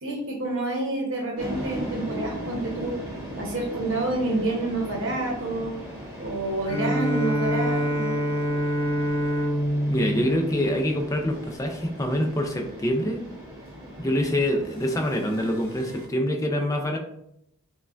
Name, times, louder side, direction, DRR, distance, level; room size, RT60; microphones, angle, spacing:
voice 1, 0.0-2.9 3.4-5.7 6.2-8.2, right 2 dB, 60° right, 1 dB, 0.8 m, -28 dB
sound 1, 1.4-16.1, equal, 25° right, 1.5 m, -38 dB
Bowed string instrument, 6.7-11.4, equal, 75° left, 0.8 m, -26 dB
voice 2, 9.9-13.3 14.0-17.0, equal, 15° left, 2 dB, 0.4 m, -25 dB
4.6 x 2.2 x 2.4 m, 0.76 s
head